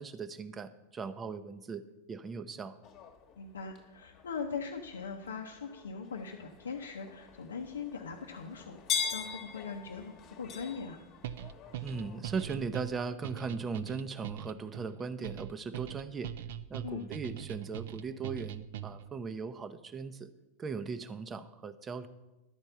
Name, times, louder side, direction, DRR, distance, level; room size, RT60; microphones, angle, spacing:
voice 1, 0.0-2.8 11.8-16.3 16.7-20.3 20.6-22.1, right 5 dB, 25° right, 12 dB, 0.6 m, -38 dB
sound 1, 2.8-12.5, left 7 dB, 40° left, 1.1 m, -42 dB
voice 2, 3.4-11.0 16.8-17.1, left 5 dB, 85° left, 1 dB, 0.6 m, -41 dB
sound 2, 11.2-19.1, right 11 dB, 65° right, 0.4 m, -42 dB
11.0 x 4.5 x 6.6 m, 1.1 s
hypercardioid pair, 100°, 0 cm